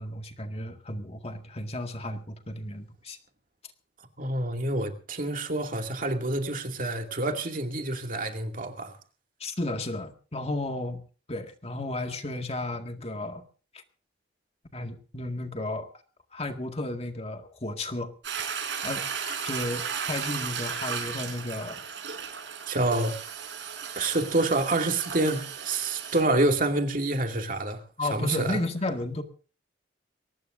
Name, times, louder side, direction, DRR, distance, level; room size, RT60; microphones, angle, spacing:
voice 1, 0.0-3.2 9.4-11.0 11.3-13.4 14.7-15.9 16.3-18.1 18.8-21.8 28.0-29.2, left 2 dB, 35° left, 2.0 m, -33 dB
voice 2, 4.2-9.0 22.7-23.1 24.0-28.6, right 2 dB, 50° right, 2.5 m, -27 dB
Toilet flush, 18.2-26.2, right 7 dB, 80° right, 5.4 m, -35 dB
23.0 x 19.5 x 2.6 m
head